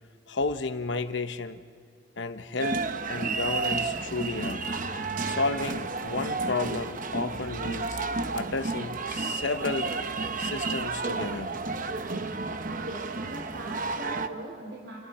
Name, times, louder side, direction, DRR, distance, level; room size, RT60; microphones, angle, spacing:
voice 1, 0.3-1.6 2.2-2.8 3.1-4.6 5.2-8.0 8.3-11.5, left 3 dB, 60° left, 10 dB, 0.9 m, -32 dB
sound 1, 2.6-14.3, right 3 dB, 40° right, 0.9 m, -32 dB
voice 2, 12.7-15.0, right 1 dB, 75° right, -1 dB, 3.2 m, -40 dB
29.5 x 29.0 x 4.3 m, 2.2 s
head